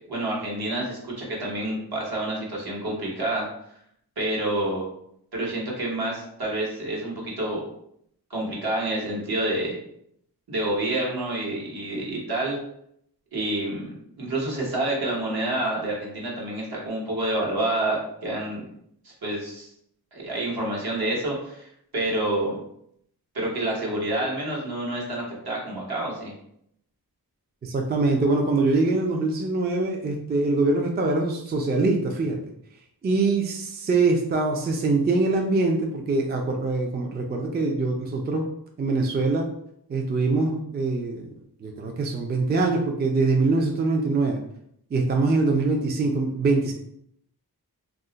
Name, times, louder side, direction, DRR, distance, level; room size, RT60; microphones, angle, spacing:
voice 1, 0.1-3.5 4.2-4.8 5.3-7.6 8.3-9.8 10.5-12.6 13.3-18.6 19.0-19.7 20.1-22.5 23.3-26.3, right 1 dB, 70° right, -4 dB, 1.1 m, -28 dB
voice 2, 27.6-32.4 33.0-38.4 38.8-39.5 39.9-41.3 41.6-44.4 44.9-46.7, right 3 dB, 25° right, 2 dB, 0.3 m, -23 dB
2.3 x 2.1 x 3.8 m, 0.73 s
wide cardioid pair, 100°, 38 cm